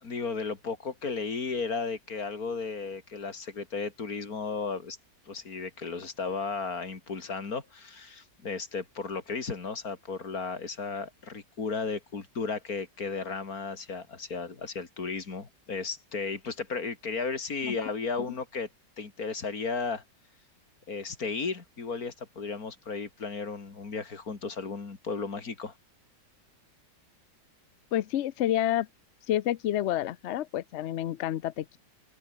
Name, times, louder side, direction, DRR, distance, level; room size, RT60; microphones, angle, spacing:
voice 1, 0.0-5.0 5.3-18.7 19.0-20.0 20.9-25.7, left 4 dB, 55° left, 3.1 m, -34 dB
voice 2, 27.9-28.9 29.3-31.8, left 12 dB, 70° left, 0.6 m, -29 dB
open air
omnidirectional pair, 1.9 m